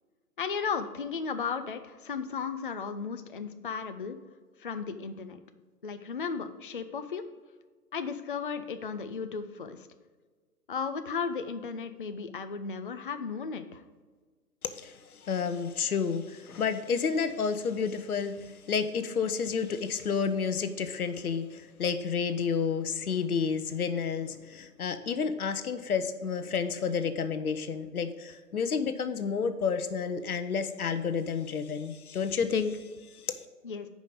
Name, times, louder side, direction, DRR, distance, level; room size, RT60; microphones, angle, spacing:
voice 1, 0.4-4.2 4.6-5.4 5.8-7.2 7.9-9.9 10.7-13.8 33.6-33.9, left 5 dB, 35° left, 9 dB, 0.4 m, -35 dB
voice 2, 14.6-33.4, left 6 dB, 65° left, 10 dB, 0.9 m, -30 dB
8.9 x 5.3 x 4.9 m, 1.4 s
figure-of-eight pair, 130°, 48 cm